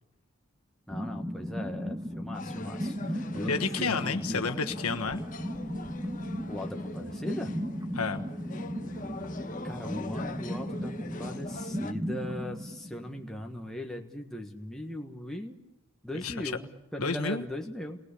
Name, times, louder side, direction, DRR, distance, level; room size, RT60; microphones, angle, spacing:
voice 1, 0.9-4.4 6.5-7.5 9.6-15.6 16.0-18.0, left 1 dB, ahead, 1 dB, 1.5 m, -39 dB
sound 1, 0.9-13.6, equal, 15° right, 1.7 m, -36 dB
sound 2, 2.3-11.9, left 2 dB, 35° left, 1.3 m, -44 dB
voice 2, 3.5-5.2 7.9-8.2 16.2-16.6 17.0-17.4, left 4 dB, 90° left, 6 dB, 1.4 m, -30 dB
29.0 x 19.5 x 8.5 m, 1.0 s
head